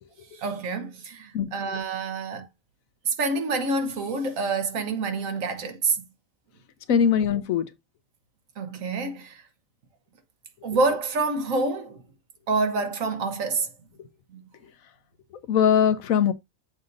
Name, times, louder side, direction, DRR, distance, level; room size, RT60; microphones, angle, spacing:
voice 1, 0.3-2.5 3.1-6.0 8.6-9.4 10.6-12.0 12.5-13.7 14.3-14.4, right 3 dB, 75° right, 1.4 m, -27 dB
voice 2, 6.9-7.7 15.5-16.3, left 8 dB, 80° left, 1.2 m, -21 dB
6.9 x 2.6 x 5.2 m
omnidirectional pair, 1.4 m